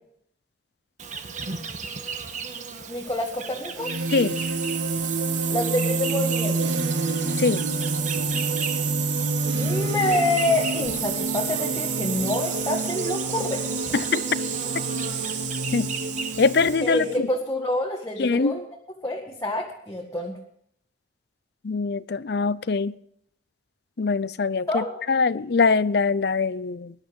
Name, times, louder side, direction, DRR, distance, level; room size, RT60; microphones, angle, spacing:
Insect, 1.0-16.7, right 5 dB, 40° right, 1.4 m, -37 dB
voice 1, 2.9-3.9 5.5-6.8 9.5-13.6 16.8-18.7 19.0-20.3 24.7-25.0, left 1 dB, 20° left, 1.9 m, -27 dB
sound 1, 3.8-17.2, right 4 dB, 70° right, 1.7 m, -27 dB
voice 2, 16.4-17.3 18.2-18.6 21.6-22.9 24.0-26.9, left 4 dB, 60° left, 0.6 m, -23 dB
20.0 x 11.5 x 5.3 m
head